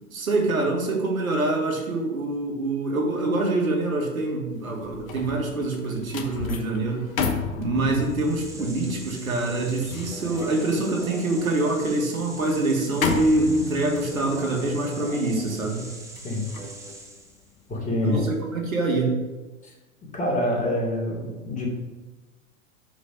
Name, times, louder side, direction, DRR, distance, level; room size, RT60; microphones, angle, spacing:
voice 1, 0.1-7.1 7.6-15.9 18.0-19.2, right 2 dB, 85° right, 1 dB, 1.8 m, -25 dB
sound 1, 4.6-17.9 18.3-18.6, left 5 dB, 75° left, 1.1 m, -34 dB
sound 2, 8.0-17.5, right 1 dB, 5° right, 1.3 m, -41 dB
voice 2, 17.7-18.3 19.6-19.7 20.1-21.7, left 1 dB, 20° left, -3 dB, 2.7 m, -26 dB
6.4 x 5.1 x 6.3 m, 1.2 s
hypercardioid pair, 95°, 41 cm